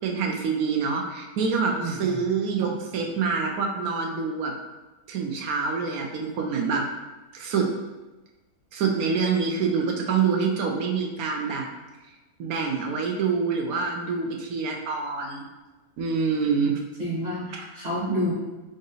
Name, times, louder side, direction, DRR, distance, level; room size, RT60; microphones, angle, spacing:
voice 1, 0.0-4.5 5.1-6.8 7.3-7.6 8.7-11.7 12.4-15.5 16.0-16.8, right 5 dB, 70° right, 1 dB, 1.0 m, -26 dB
voice 2, 1.8-2.2 17.0-18.3, equal, 40° right, -8 dB, 1.7 m, -29 dB
3.8 x 2.5 x 3.9 m, 1.1 s
omnidirectional pair, 1.8 m